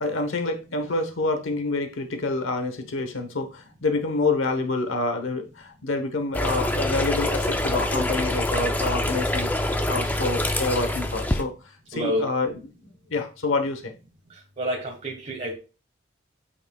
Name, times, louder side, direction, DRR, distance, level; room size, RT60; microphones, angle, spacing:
voice 1, 0.0-9.5 9.9-11.5 11.9-12.6 13.1-13.9, left 3 dB, 80° left, 7 dB, 1.0 m, -27 dB
sound 1, 6.3-11.4, left 1 dB, 10° left, 0.4 m, -25 dB
voice 2, 11.9-12.3 14.3-15.5, equal, 35° right, -1 dB, 1.2 m, -29 dB
8.2 x 5.7 x 2.3 m, 0.32 s
head